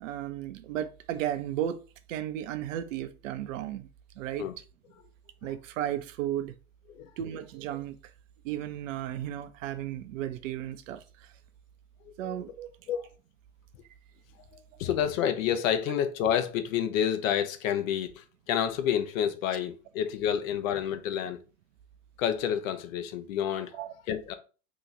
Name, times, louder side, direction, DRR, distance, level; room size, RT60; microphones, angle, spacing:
voice 1, 0.0-1.8 2.1-3.9 4.2-4.5 5.4-6.5 7.2-8.1 8.4-11.3 12.2-12.7 23.7-23.9, right 11 dB, 55° right, 0.6 m, -34 dB
voice 2, 12.1-12.4 12.9-13.1 14.5-21.4 22.2-23.8 24.1-24.3, left 9 dB, 60° left, 0.7 m, -29 dB
2.9 x 2.4 x 3.9 m
hypercardioid pair, 95°, 46 cm